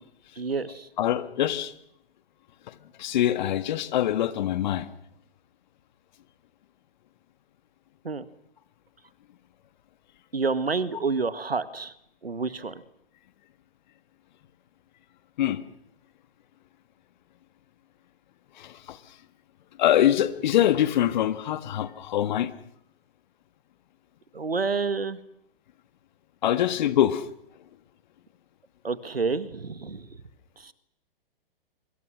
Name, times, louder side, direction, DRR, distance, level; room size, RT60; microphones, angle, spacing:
voice 1, 0.4-0.9 8.0-8.3 10.3-11.9 12.2-12.7 24.3-25.2 28.8-30.1 30.6-30.7, right 4 dB, 85° right, 14 dB, 1.8 m, -28 dB
voice 2, 1.0-1.7 2.7-4.9 15.4-15.6 18.6-19.0 19.8-22.5 26.4-27.2, left 11 dB, 50° left, 13 dB, 1.8 m, -24 dB
26.5 x 24.5 x 6.3 m, 0.75 s
figure-of-eight pair, 120°, 29 cm